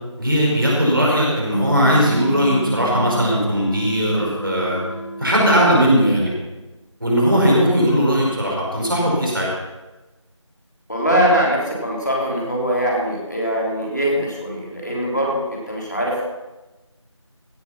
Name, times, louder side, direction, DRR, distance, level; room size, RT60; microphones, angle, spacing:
voice 1, 0.2-4.8 5.2-6.3 7.0-9.5, equal, 45° right, -4 dB, 5.1 m, -18 dB
sound 1, 1.5-6.2, equal, 30° right, 1.1 m, -31 dB
sound 2, 1.9-6.1, right 1 dB, 60° left, 1.5 m, -35 dB
voice 2, 10.9-16.2, equal, 35° left, -3 dB, 3.2 m, -22 dB
16.5 x 8.4 x 5.8 m, 1.1 s
figure-of-eight pair, 180°, 16 cm